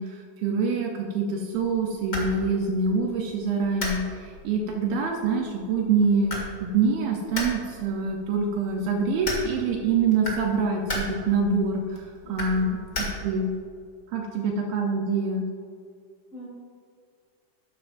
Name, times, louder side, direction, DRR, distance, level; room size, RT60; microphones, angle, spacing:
voice 1, 0.0-12.8 13.2-13.5 14.1-15.5, right 4 dB, 75° right, 1 dB, 2.4 m, -25 dB
sound 1, 1.5-13.6, left 1 dB, 80° left, 0.7 m, -37 dB
voice 2, 12.2-12.7 16.3-16.5, equal, 25° left, -7 dB, 2.7 m, -44 dB
12.5 x 9.5 x 2.6 m, 2.1 s
omnidirectional pair, 4.6 m